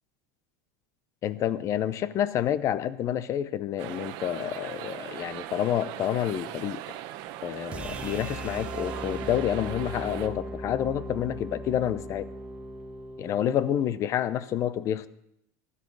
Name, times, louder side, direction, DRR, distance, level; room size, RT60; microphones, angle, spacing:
voice 1, 1.2-7.0 7.4-12.3 13.2-15.1, left 10 dB, 35° left, 16 dB, 0.6 m, -28 dB
sound 1, 3.8-10.3, right 13 dB, 50° right, 1.0 m, -39 dB
sound 2, 7.7-13.9, right 1 dB, 15° right, 1.2 m, -38 dB
16.0 x 12.5 x 4.0 m, 0.78 s
supercardioid pair, 145°, 9 cm